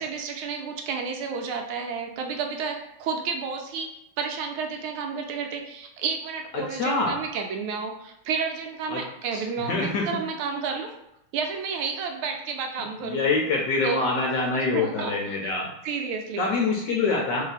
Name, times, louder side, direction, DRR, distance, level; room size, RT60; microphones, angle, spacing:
voice 1, 0.0-3.9 4.2-11.0 11.3-13.3 13.8-14.1 14.5-15.4 15.8-16.5, right 5 dB, 80° right, 4 dB, 1.4 m, -31 dB
voice 2, 6.5-7.1 8.9-9.0 9.3-10.0 13.0-15.7 16.4-17.4, left 3 dB, 70° left, -1 dB, 1.2 m, -25 dB
3.4 x 2.7 x 4.0 m, 0.83 s
omnidirectional pair, 2.4 m